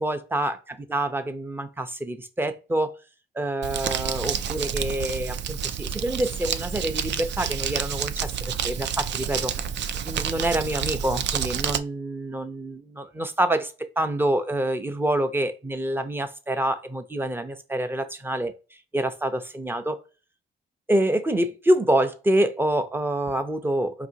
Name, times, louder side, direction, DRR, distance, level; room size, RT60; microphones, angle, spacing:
voice 1, 0.0-3.0 3.3-9.5 10.0-18.5 18.9-20.0 20.9-24.1, right 1 dB, 10° right, 0.6 m, -26 dB
Crumpling crinkling, 3.6-11.8, right 8 dB, 65° right, 0.4 m, -29 dB
4.9 x 2.8 x 2.7 m
cardioid pair, 120°, 20 cm